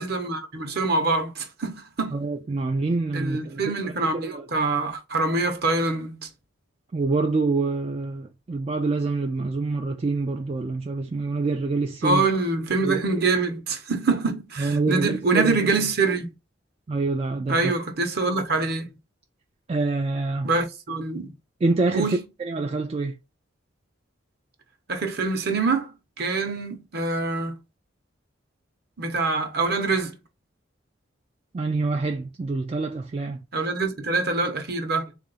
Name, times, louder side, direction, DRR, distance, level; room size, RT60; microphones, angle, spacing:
voice 1, 0.0-2.2 3.1-6.3 12.0-16.3 17.5-18.9 20.4-21.3 21.9-22.2 24.9-25.9 26.2-27.6 29.0-30.1 33.5-35.1, right 3 dB, 50° right, 0.9 m, -25 dB
voice 2, 2.1-3.7 4.1-4.5 6.9-12.3 12.8-13.0 14.6-15.7 16.9-17.7 19.7-20.5 21.6-23.2 31.5-33.4, right 3 dB, 30° right, 0.3 m, -26 dB
3.8 x 2.5 x 4.0 m
head